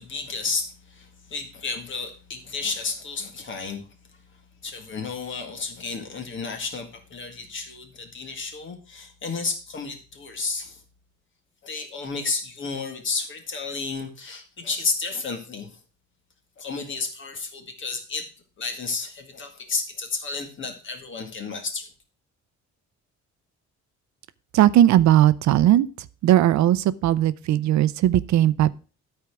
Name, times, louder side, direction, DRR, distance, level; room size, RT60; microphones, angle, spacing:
voice 1, 0.0-3.9 4.6-10.8 11.6-15.7 16.6-18.3 18.6-21.9, left 4 dB, 40° left, 2.0 m, -32 dB
voice 2, 24.5-28.7, right 12 dB, 65° right, 0.6 m, -18 dB
13.0 x 4.5 x 6.0 m
cardioid pair, 180°, 30 cm